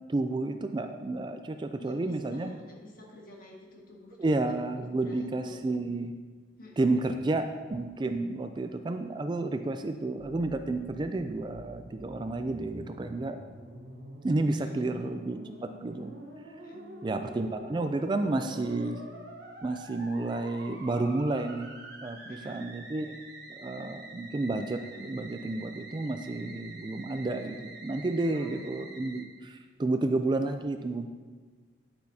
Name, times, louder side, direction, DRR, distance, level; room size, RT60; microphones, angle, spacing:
voice 1, 0.1-2.5 4.2-6.1 6.8-13.4 14.2-16.1 17.0-19.0 19.6-21.7 22.0-23.1 23.5-31.1, right 2 dB, 25° right, 7 dB, 0.3 m, -31 dB
voice 2, 1.8-4.6 5.0-5.6 6.6-7.1 14.4-15.0 16.6-17.6 22.2-22.6 28.3-28.9, left 2 dB, 50° left, -1 dB, 1.6 m, -50 dB
Musical instrument, 10.2-29.2, right 1 dB, 60° right, 1.1 m, -47 dB
9.4 x 8.7 x 2.8 m, 1.4 s
head